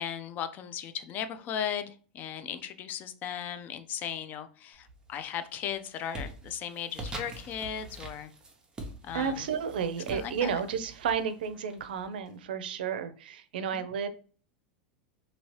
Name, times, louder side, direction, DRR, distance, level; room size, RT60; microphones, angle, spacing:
voice 1, 0.0-8.3 9.0-9.5 10.1-10.6 13.7-13.8, left 9 dB, 35° left, 0.4 m, -37 dB
sound 1, 4.8-5.3 5.7-12.3, right 1 dB, 15° right, 0.7 m, -44 dB
voice 2, 9.1-14.1, right 7 dB, 90° right, 0.4 m, -32 dB
2.8 x 2.7 x 3.0 m
supercardioid pair, 125°, 5 cm